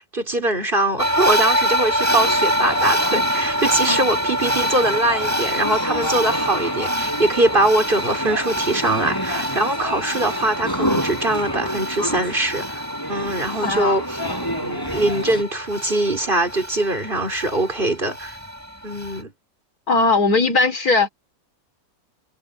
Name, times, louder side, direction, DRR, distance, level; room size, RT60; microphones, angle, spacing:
voice 1, 0.1-12.8 13.1-14.2 14.6-18.4 18.8-19.3, right 2 dB, 35° right, 4.4 m, -22 dB
sound 1, 1.0-19.2, equal, 10° right, 7.8 m, -25 dB
sound 2, 2.0-15.4, equal, 15° left, 7.2 m, -30 dB
voice 2, 13.6-14.0 19.9-21.1, left 3 dB, 75° left, 3.8 m, -18 dB
omnidirectional pair, 1.6 m